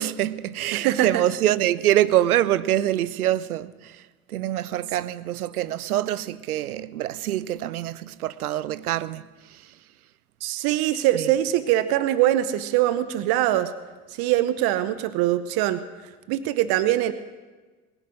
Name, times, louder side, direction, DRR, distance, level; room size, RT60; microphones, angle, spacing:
voice 1, 0.0-9.7 11.1-11.3, right 13 dB, 85° right, 0.6 m, -25 dB
voice 2, 0.7-1.2 10.4-13.7 14.2-15.8 16.3-17.1, right 13 dB, 60° right, 0.9 m, -22 dB
21.0 x 10.0 x 6.2 m
hypercardioid pair, 65°, 43 cm